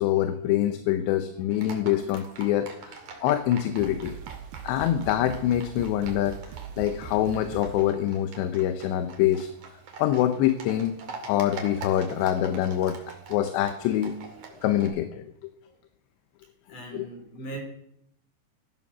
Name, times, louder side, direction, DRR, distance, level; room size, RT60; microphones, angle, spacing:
voice 1, 0.0-4.2 4.6-6.4 6.8-9.5 10.0-11.0 11.3-14.2 14.6-15.5 16.9-17.1, left 12 dB, 80° left, 10 dB, 3.0 m, -25 dB
Livestock farm animals working animals, 1.5-14.9, right 4 dB, 45° right, 3.2 m, -45 dB
sound 1, 2.0-2.6 3.4-3.5 3.8-8.0, right 8 dB, 75° right, 2.5 m, -41 dB
voice 2, 16.7-17.6, right 2 dB, 45° left, 3 dB, 5.0 m, -39 dB
16.0 x 13.5 x 6.1 m, 0.75 s
omnidirectional pair, 5.2 m